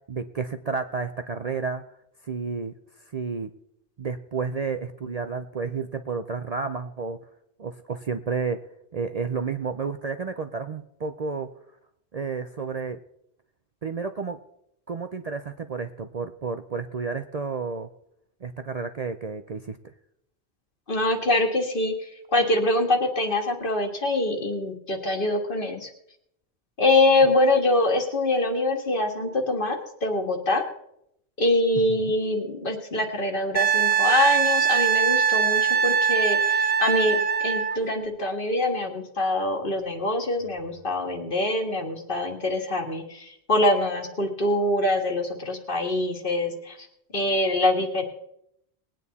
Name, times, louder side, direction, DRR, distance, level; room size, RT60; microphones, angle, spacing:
voice 1, 0.0-1.8 2.2-2.7 3.1-3.5 4.0-7.2 7.6-8.6 8.9-11.5 12.1-13.0 13.8-14.4 14.9-17.9 18.4-19.8, right 5 dB, 45° right, 8 dB, 0.6 m, -31 dB
voice 2, 20.9-25.9 26.8-30.6 31.4-46.8 47.1-48.0, left 1 dB, 50° left, 4 dB, 1.9 m, -24 dB
Wind instrument woodwind instrument, 33.6-37.8 40.5-40.6, right 7 dB, 60° right, 1.3 m, -22 dB
20.5 x 9.0 x 4.1 m, 0.76 s
omnidirectional pair, 1.1 m